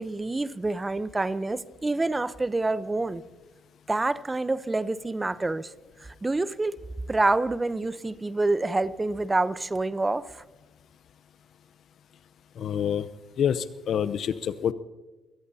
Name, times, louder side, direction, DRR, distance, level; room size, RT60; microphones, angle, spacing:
voice 1, 0.0-3.2 3.9-5.7 6.0-6.8 7.1-10.3, right 2 dB, 20° right, 0.8 m, -27 dB
voice 2, 12.6-13.1 13.4-14.7, left 8 dB, 65° left, 0.7 m, -27 dB
26.5 x 18.0 x 2.8 m
supercardioid pair, 70°, 0 cm